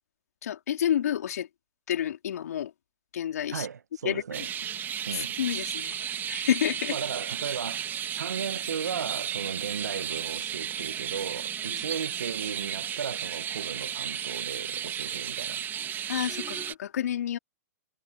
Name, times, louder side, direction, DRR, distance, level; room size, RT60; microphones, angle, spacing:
voice 1, 0.4-1.5 1.9-2.7 3.1-3.7 4.0-4.5 4.9-7.0 11.7-11.8 16.1-17.4, left 10 dB, 70° left, 3.8 m, -30 dB
voice 2, 3.5-4.5 5.1-5.3 6.9-15.6, right 7 dB, 85° right, 1.4 m, -36 dB
sound 1, 4.3-16.7, right 9 dB, 20° right, 3.0 m, -34 dB
hypercardioid pair, 125°, 9 cm